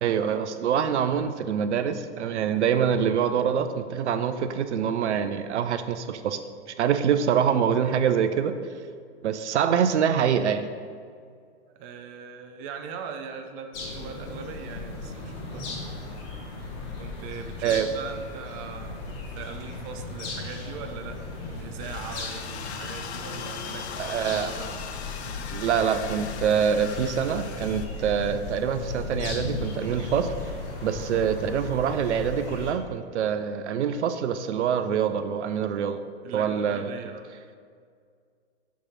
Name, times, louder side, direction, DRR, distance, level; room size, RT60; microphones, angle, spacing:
voice 1, 0.0-6.4 6.8-8.6 9.2-10.7 17.6-17.9 24.0-24.5 25.5-30.3 30.8-36.0 36.3-36.9, right 8 dB, 75° right, 10 dB, 0.5 m, -25 dB
voice 2, 11.8-15.7 17.0-19.0 19.4-21.2 21.5-24.8 36.2-37.3, right 6 dB, 30° right, 5 dB, 0.5 m, -40 dB
sound 1, 13.7-32.7, left 3 dB, 30° left, 1.3 m, -36 dB
sound 2, 21.8-27.9, left 6 dB, 70° left, 0.7 m, -39 dB
6.2 x 3.6 x 5.7 m, 2.1 s
hypercardioid pair, 120°, 34 cm